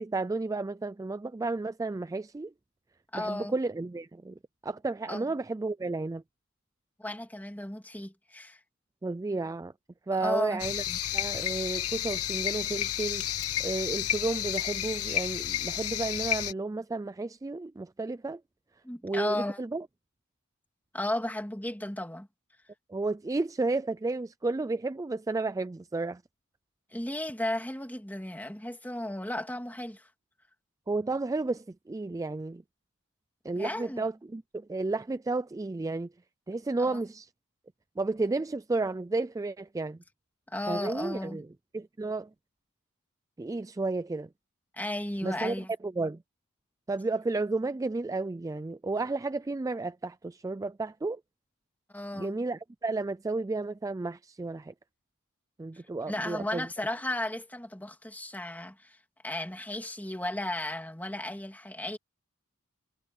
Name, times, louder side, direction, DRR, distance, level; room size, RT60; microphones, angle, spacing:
voice 1, 0.0-2.5 3.1-4.3 4.6-6.2 9.0-9.7 10.1-13.3 13.6-18.4 19.0-19.9 22.9-26.2 30.9-32.6 33.4-36.1 36.5-37.3 38.0-40.0 40.7-41.5 41.7-42.3 43.4-44.3 45.2-45.6 45.8-46.2 46.9-51.2 52.1-54.7 55.6-56.7, right 3 dB, 15° right, 0.3 m, -32 dB
voice 2, 3.1-3.6 5.1-5.3 7.0-8.6 10.1-10.6 18.8-19.6 20.9-22.3 26.9-30.1 33.5-34.0 36.8-37.0 40.5-41.4 44.7-45.7 51.9-52.4 56.1-59.0 59.2-62.0, left 1 dB, 10° left, 2.7 m, -34 dB
sound 1, 10.6-16.5, left 11 dB, 85° left, 1.1 m, -31 dB
head